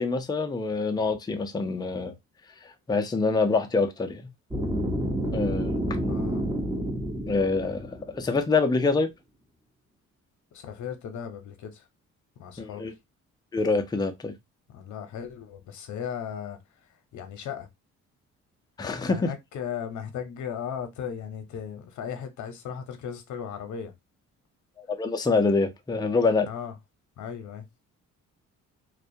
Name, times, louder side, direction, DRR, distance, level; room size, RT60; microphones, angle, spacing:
voice 1, 0.0-2.1 2.9-4.2 5.3-6.2 7.3-9.1 12.6-12.9 13.5-14.3 18.8-19.3 24.8-26.5, left 3 dB, 15° left, 0.4 m, -25 dB
sound 1, 4.5-8.5, equal, 15° right, 0.7 m, -29 dB
voice 2, 6.1-6.4 10.5-11.9 12.4-12.9 14.7-17.7 19.1-23.9 26.5-26.7 27.2-27.7, left 8 dB, 70° left, 0.7 m, -37 dB
2.3 x 2.1 x 2.6 m
cardioid pair, 90°, 30 cm